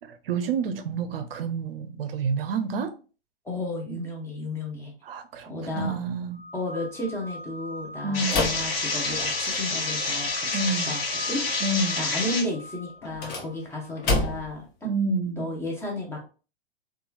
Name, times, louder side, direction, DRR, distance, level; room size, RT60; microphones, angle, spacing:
voice 1, 0.0-2.9 5.0-5.5 5.7-6.4 8.0-8.4 10.5-10.9 11.6-12.1 14.8-15.5, right 4 dB, 65° right, 0.5 m, -28 dB
voice 2, 3.4-4.9 5.5-5.9 6.5-10.6 10.9-11.0 11.3-11.4 12.0-14.6 15.4-16.3, left 2 dB, 10° left, 0.6 m, -33 dB
sound 1, 6.3-14.1, left 1 dB, 20° right, 1.4 m, -42 dB
sound 2, 8.1-12.5, left 3 dB, 65° left, 1.2 m, -28 dB
sound 3, 8.3-9.7 13.0-14.6, left 2 dB, 45° left, 0.9 m, -29 dB
2.9 x 2.3 x 2.3 m
hypercardioid pair, 115°, 31 cm